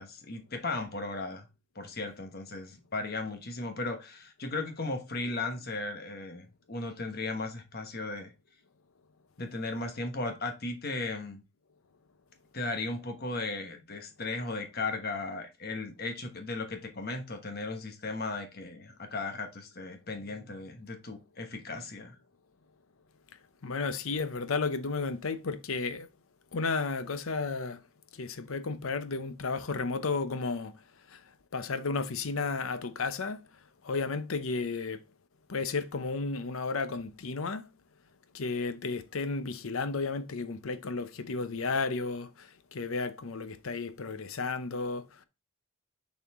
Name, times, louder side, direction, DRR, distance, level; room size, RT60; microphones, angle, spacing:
voice 1, 0.0-1.5 1.7-8.3 9.4-11.4 12.5-22.2, left 3 dB, 45° left, 1.2 m, -36 dB
voice 2, 23.6-26.1 26.5-27.8 28.1-30.8 31.1-33.4 33.8-35.0 35.5-37.7 38.3-45.2, left 4 dB, 75° left, 0.7 m, -33 dB
7.0 x 4.2 x 3.6 m
head